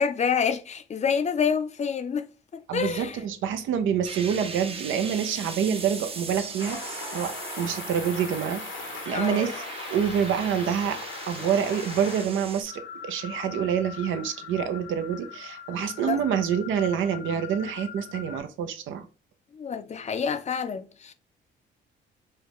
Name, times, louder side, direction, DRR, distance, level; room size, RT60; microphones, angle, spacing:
voice 1, 0.0-2.3 2.5-3.2 9.1-9.5 16.1-16.2 19.5-21.1, left 6 dB, 35° left, 0.4 m, -27 dB
voice 2, 2.7-9.6 9.9-11.0 11.3-12.7 13.0-19.1, right 8 dB, 80° right, 0.6 m, -27 dB
sound 1, 4.0-12.6, right 4 dB, 30° right, 0.6 m, -38 dB
sound 2, 6.6-12.2, left 5 dB, 70° left, 0.8 m, -39 dB
sound 3, 12.7-18.4, left 9 dB, 90° left, 1.5 m, -41 dB
4.8 x 2.2 x 2.9 m
cardioid pair, 90°, 20 cm